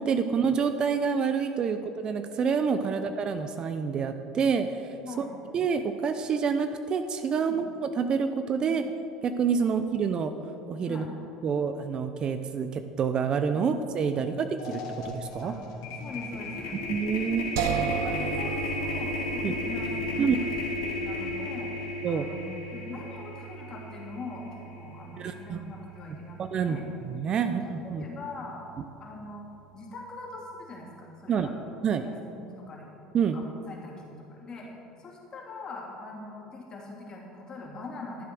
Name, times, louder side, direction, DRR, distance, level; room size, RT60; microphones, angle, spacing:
voice 1, 0.0-4.9 5.2-5.3 5.5-7.7 8.0-8.8 9.2-10.3 10.7-11.1 11.4-15.5 16.9-17.5 19.4-19.5 20.2-20.4 22.0-22.3 25.2-25.7 26.4-28.0 31.3-31.5 31.8-32.0 33.1-33.4, right 6 dB, 40° right, 9 dB, 0.7 m, -27 dB
sound 1, 14.1-14.3 14.6-24.8, left 3 dB, 80° left, 2.2 m, -34 dB
voice 2, 15.9-16.8 17.6-20.3 20.8-21.7 22.1-22.4 22.7-26.8 27.4-28.6 29.0-29.5 29.7-31.5 32.0-32.9 33.3-34.7 35.0-38.3, left 3 dB, 35° left, -2 dB, 3.1 m, -42 dB
sound 2, 17.6-30.6, right 9 dB, 80° right, 0.6 m, -38 dB
13.0 x 7.6 x 6.2 m, 2.9 s
supercardioid pair, 90°, 2 cm